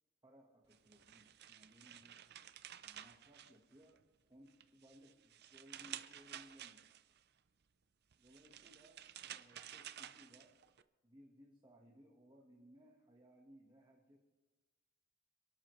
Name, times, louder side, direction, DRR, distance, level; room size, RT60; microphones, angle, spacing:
voice 1, 0.2-2.2 2.8-6.9 8.2-10.6 11.0-14.2, equal, 20° right, -1 dB, 1.4 m, -63 dB
sound 1, 0.7-4.1 4.5-7.2 8.1-10.8, right 10 dB, 50° right, 0.6 m, -53 dB
28.0 x 12.5 x 3.2 m, 1.2 s
head